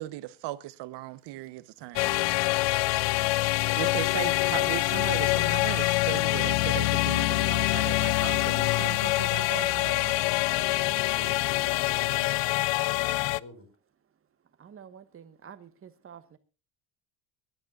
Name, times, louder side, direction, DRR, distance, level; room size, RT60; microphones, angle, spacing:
voice 1, 0.0-2.2 3.8-10.2, right 16 dB, 60° right, 1.1 m, -37 dB
sound 1, 2.0-13.4, left 21 dB, 65° left, 0.6 m, -25 dB
voice 2, 10.6-12.3 12.7-13.7, left 1 dB, 30° left, 5.5 m, -50 dB
voice 3, 14.6-16.4, right 8 dB, 25° right, 1.5 m, -49 dB
23.5 x 12.0 x 2.5 m
cardioid pair, 130°, 47 cm